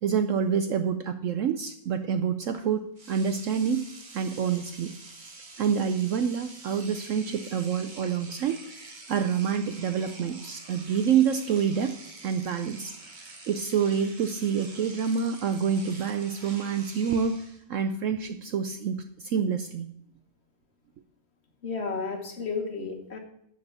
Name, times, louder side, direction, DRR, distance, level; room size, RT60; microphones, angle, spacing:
voice 1, 0.0-3.9 4.1-4.9 5.6-8.6 9.1-12.0 12.2-12.9 13.5-19.9, right 7 dB, 65° right, 8 dB, 0.8 m, -27 dB
Engine / Domestic sounds home sounds, 2.5-2.7 3.0-17.6, right 3 dB, 30° right, 1.4 m, -47 dB
voice 2, 21.6-23.2, left 4 dB, 45° left, 4 dB, 1.4 m, -32 dB
9.1 x 5.4 x 6.9 m, 0.72 s
omnidirectional pair, 1.7 m